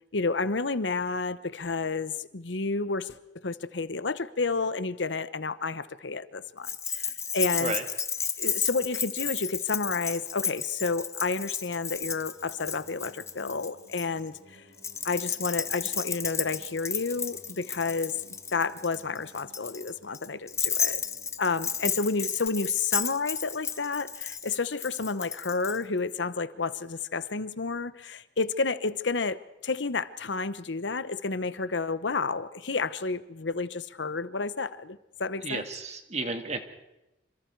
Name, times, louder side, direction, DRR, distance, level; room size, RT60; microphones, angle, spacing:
voice 1, 0.1-3.2 3.4-7.7 8.4-14.6 15.0-18.1 18.5-21.0 21.4-29.4 29.6-35.6, left 4 dB, 80° left, 14 dB, 1.0 m, -30 dB
Keys jangling, 6.6-14.1 14.8-25.8, left 6 dB, 15° left, 0.8 m, -33 dB
Singing, 11.6-22.8, right 2 dB, 85° right, 5.3 m, -59 dB
voice 2, 35.4-36.6, right 3 dB, 35° right, 7 dB, 1.9 m, -32 dB
27.0 x 25.5 x 4.7 m, 0.94 s
head